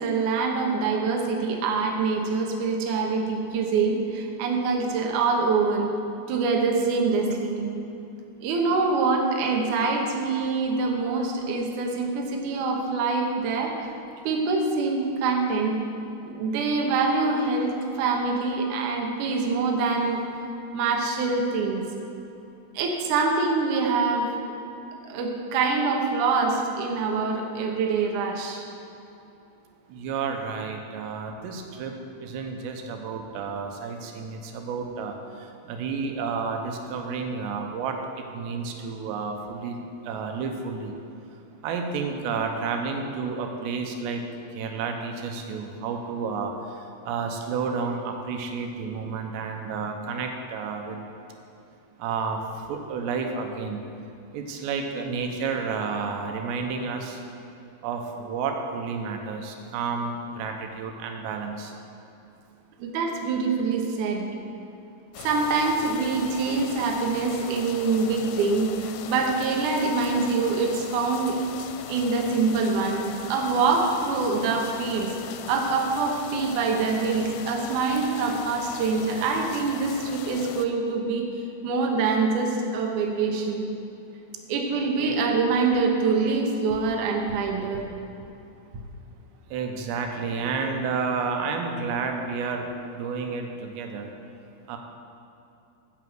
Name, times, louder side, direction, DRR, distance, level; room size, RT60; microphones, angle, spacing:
voice 1, 0.0-5.9 6.3-7.6 8.4-13.9 14.2-15.8 16.3-20.2 20.7-21.8 22.7-24.3 25.0-28.6 62.8-64.3 65.2-71.4 71.9-81.3 81.6-83.6 84.5-87.9, right 4 dB, 70° right, 1 dB, 1.9 m, -25 dB
voice 2, 29.9-31.9 32.2-35.1 35.7-38.0 38.3-39.8 40.1-40.9 41.6-44.2 44.6-46.5 47.1-51.0 52.0-52.4 52.7-53.8 54.3-57.2 57.8-61.7 84.9-85.2 89.5-94.1 94.7-94.8, right 5 dB, 90° right, 4 dB, 3.0 m, -31 dB
sound 1, 65.1-80.7, left 9 dB, 80° left, 2.5 m, -40 dB
9.2 x 6.1 x 7.6 m, 2.7 s
omnidirectional pair, 4.9 m